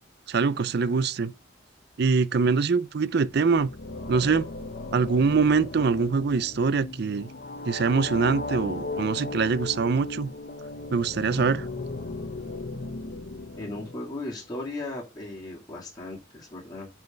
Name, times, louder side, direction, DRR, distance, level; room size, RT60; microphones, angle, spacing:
voice 1, 0.3-1.3 2.0-3.7 4.1-4.5 4.9-7.3 7.7-10.3 10.9-11.7, right 4 dB, 55° right, 0.5 m, -24 dB
sound 1, 3.3-14.4, left 2 dB, 50° left, 0.8 m, -37 dB
voice 2, 13.6-16.9, left 2 dB, 20° left, 2.4 m, -36 dB
6.3 x 4.6 x 5.8 m
head